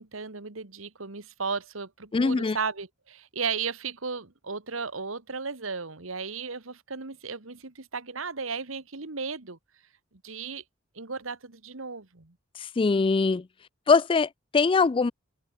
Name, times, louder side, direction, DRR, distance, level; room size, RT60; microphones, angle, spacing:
voice 1, 0.0-9.6 10.2-10.6 11.0-12.4, right 5 dB, 85° right, 1.9 m, -35 dB
voice 2, 2.1-2.6 12.6-13.5 13.9-15.1, left 4 dB, 25° left, 0.4 m, -22 dB
open air
head